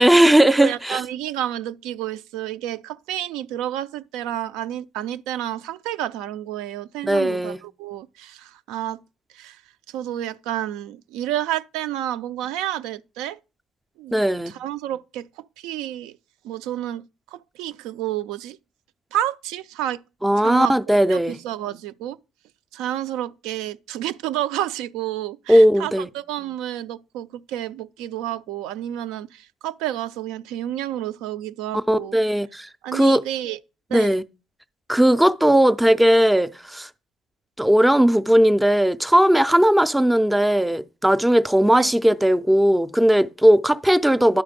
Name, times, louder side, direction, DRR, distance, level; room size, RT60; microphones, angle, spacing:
voice 1, 0.0-1.0 7.0-7.6 14.1-14.5 20.2-21.4 25.5-26.1 31.9-32.7 32.9-33.2 33.9-34.2 34.9-36.9 37.6-44.4, right 1 dB, 5° right, 0.3 m, -17 dB
voice 2, 0.6-9.0 9.3-9.6 9.9-13.4 14.0-16.2 16.4-18.6 19.1-20.0 20.4-20.7 21.0-22.2 22.7-32.2 32.8-33.6 33.9-34.1 41.7-41.9, right 12 dB, 90° right, 0.4 m, -30 dB
10.5 x 4.1 x 5.1 m
cardioid pair, 140°, 0 cm